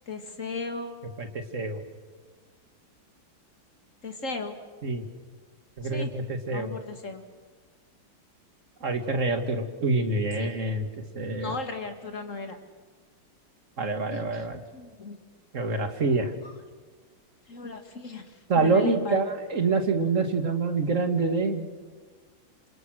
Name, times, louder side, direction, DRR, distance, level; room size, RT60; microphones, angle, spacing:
voice 1, 0.1-0.9 4.0-4.5 5.9-6.1 6.5-7.2 10.4-10.5 11.4-12.6 14.1-14.2 14.7-15.2 17.5-18.2 18.6-19.2, left 3 dB, 40° left, 6 dB, 2.4 m, -35 dB
voice 2, 1.2-1.8 4.8-5.0 5.8-6.7 8.8-10.9 11.1-11.6 13.8-14.6 15.5-16.3 18.5-21.6, right 3 dB, 40° right, 7 dB, 2.3 m, -26 dB
28.0 x 27.0 x 6.4 m, 1.5 s
omnidirectional pair, 2.1 m